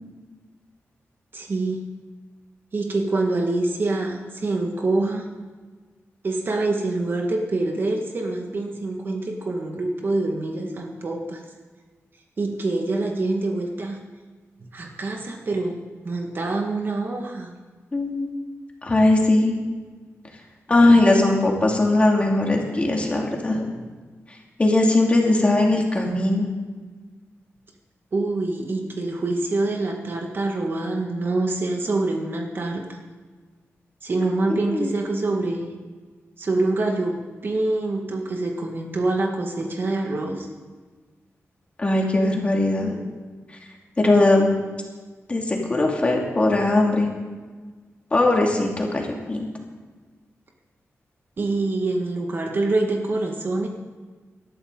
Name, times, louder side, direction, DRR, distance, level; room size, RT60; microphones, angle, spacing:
voice 1, 1.3-1.8 2.7-5.3 6.2-11.4 12.4-14.0 14.7-15.8 16.0-17.5 28.1-33.0 34.0-35.7 36.4-40.5 51.4-53.7, right 2 dB, 45° right, 2 dB, 1.8 m, -25 dB
voice 2, 17.9-18.3 18.8-19.6 20.7-23.7 24.6-26.5 34.5-34.9 41.8-43.0 44.0-44.5 45.3-47.1 48.1-49.0 49.3-49.5, left 2 dB, 25° left, 0 dB, 2.5 m, -19 dB
19.0 x 13.5 x 3.9 m, 1.4 s
wide cardioid pair, 175°, 5 cm